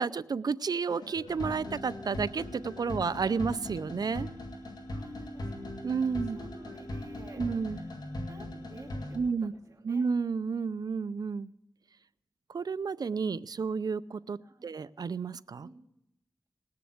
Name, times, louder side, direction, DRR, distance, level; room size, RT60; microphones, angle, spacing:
voice 1, 0.0-4.3 5.8-6.4 7.4-7.8 9.1-9.5 9.8-11.5 12.5-15.7, right 5 dB, 70° right, 0.5 m, -31 dB
sound 1, 0.9-9.2, left 1 dB, 85° left, 2.0 m, -40 dB
voice 2, 4.9-5.7 6.0-7.9 8.3-10.0 14.4-14.7 15.6-15.8, right 2 dB, 50° right, 2.8 m, -53 dB
19.0 x 6.8 x 7.9 m
wide cardioid pair, 60°, 7 cm